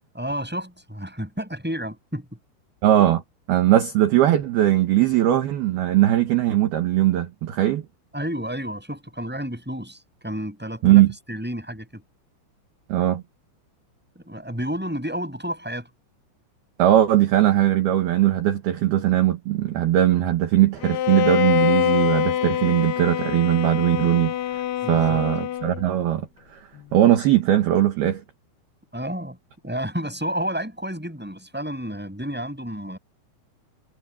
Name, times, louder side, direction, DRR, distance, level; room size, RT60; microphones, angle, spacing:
voice 1, 0.1-2.3 8.1-11.0 11.3-12.0 14.1-15.9 24.8-25.2 28.9-29.4 29.6-33.0, equal, ahead, 7.5 m, -31 dB
voice 2, 2.8-3.2 3.5-7.8 10.8-11.1 12.9-13.2 16.8-24.6 24.9-26.6 26.9-28.2, right 13 dB, 60° right, 3.0 m, -19 dB
Bowed string instrument, 20.8-25.9, left 11 dB, 70° left, 2.6 m, -24 dB
omnidirectional pair, 5.9 m